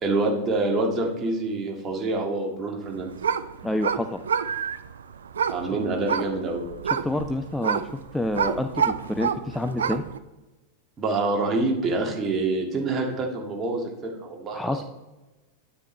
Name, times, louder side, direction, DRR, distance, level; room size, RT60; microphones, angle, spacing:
voice 1, 0.0-3.1 5.5-6.7 11.0-14.8, right 2 dB, 25° right, 1 dB, 1.8 m, -26 dB
sound 1, 2.8-10.2, right 7 dB, 65° right, 0.4 m, -29 dB
voice 2, 3.6-4.2 7.0-7.8 8.1-10.0 14.5-14.8, left 1 dB, 5° left, 6 dB, 0.4 m, -28 dB
9.6 x 8.5 x 3.2 m, 1.1 s
figure-of-eight pair, 90°, 0 cm